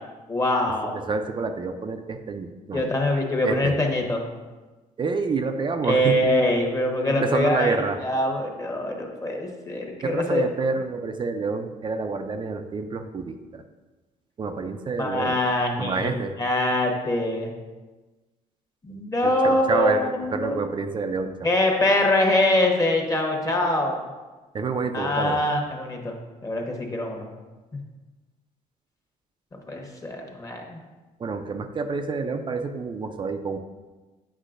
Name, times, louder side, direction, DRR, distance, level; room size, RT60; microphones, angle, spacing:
voice 1, 0.3-1.0 2.7-4.3 5.8-7.7 8.0-9.9 10.1-10.4 15.0-16.1 16.4-17.5 18.8-20.7 21.4-24.0 24.9-27.3 29.7-30.8, left 1 dB, 20° left, 1 dB, 1.1 m, -24 dB
voice 2, 1.1-2.9 3.4-3.8 5.0-6.3 7.1-8.0 10.0-13.6 14.4-15.4 15.8-16.3 19.2-21.5 24.5-25.4 31.2-33.6, right 4 dB, 30° right, 7 dB, 0.5 m, -28 dB
8.3 x 5.4 x 2.5 m, 1.2 s
cardioid pair, 105°, 15 cm